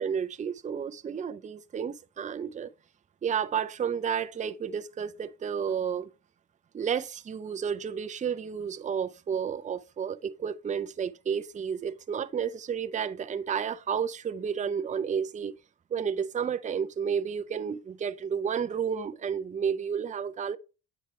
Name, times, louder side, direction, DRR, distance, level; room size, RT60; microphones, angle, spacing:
voice 1, 0.0-2.7 3.2-6.1 6.7-15.5 15.9-20.6, right 7 dB, 25° right, 0.5 m, -31 dB
8.7 x 3.3 x 4.3 m
cardioid pair, 90°, 30 cm